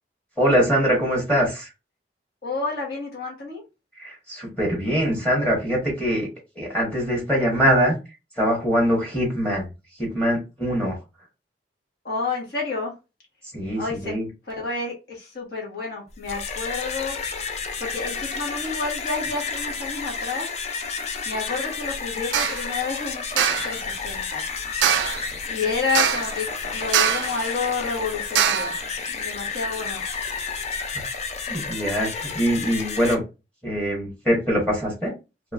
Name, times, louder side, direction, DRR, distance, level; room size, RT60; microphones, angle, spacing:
voice 1, 0.4-1.7 4.0-6.3 6.5-7.9 8.4-9.6 10.0-11.0 13.5-14.3 31.5-33.2 33.6-35.1, equal, 5° left, 1.2 m, -23 dB
voice 2, 2.4-3.6 12.0-12.9 13.8-14.1 14.5-17.2 17.8-20.5 21.2-24.6 25.5-28.7 29.1-30.0, left 4 dB, 65° left, 1.2 m, -30 dB
sound 1, 16.1-33.1, left 5 dB, 40° left, 0.4 m, -31 dB
sound 2, 22.3-22.7 23.4-23.8 24.8-25.3 26.0-26.4 26.9-27.4 28.4-28.8, right 9 dB, 80° right, 0.3 m, -22 dB
3.0 x 2.6 x 2.4 m
head